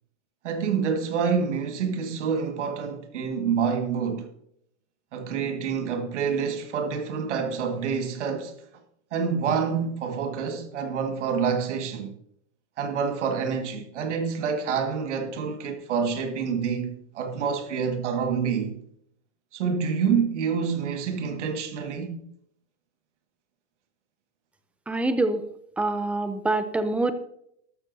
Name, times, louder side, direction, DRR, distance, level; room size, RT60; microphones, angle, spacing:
voice 1, 0.4-4.3 5.1-8.5 9.1-12.1 12.8-18.8 19.5-22.2, right 6 dB, 80° right, 1.8 m, -27 dB
voice 2, 24.9-25.4 25.8-27.1, right 2 dB, 5° right, 0.4 m, -25 dB
13.5 x 12.0 x 2.6 m
supercardioid pair, 140°, 35 cm